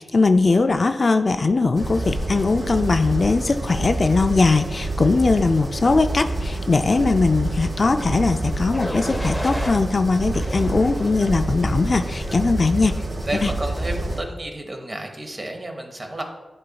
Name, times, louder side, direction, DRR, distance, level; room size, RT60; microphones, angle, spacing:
voice 1, 0.0-12.9 13.4-13.5, left 3 dB, 45° left, 8 dB, 0.3 m, -20 dB
sound 1, 1.7-14.2, right 2 dB, 50° right, 1.4 m, -27 dB
sound 2, 8.7-9.8 10.3-11.4 11.9-12.3, equal, 10° left, 0.6 m, -32 dB
voice 2, 13.2-16.2, right 1 dB, 30° right, 4 dB, 0.9 m, -31 dB
11.0 x 3.9 x 2.3 m, 1.2 s
wide cardioid pair, 100°, 0 cm